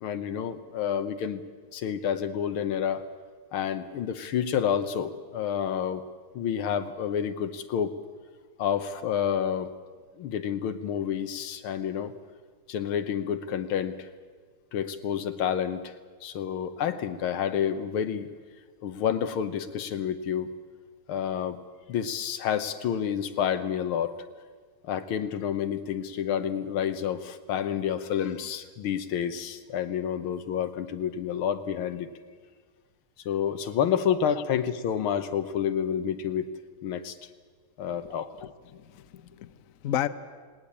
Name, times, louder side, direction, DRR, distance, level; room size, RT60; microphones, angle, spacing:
voice 1, 0.0-1.4 1.7-3.0 3.5-6.0 6.3-7.9 8.6-9.7 10.2-12.1 12.7-14.1 14.7-15.9 16.2-18.3 18.8-20.5 21.1-21.6 21.9-24.2 24.8-32.1 33.3-36.5 36.8-37.2 37.8-38.3, left 8 dB, 85° left, 10 dB, 1.9 m, -29 dB
voice 2, 38.0-40.1, left 11 dB, 60° left, 13 dB, 0.9 m, -34 dB
19.0 x 18.5 x 8.5 m, 1.5 s
omnidirectional pair, 2.3 m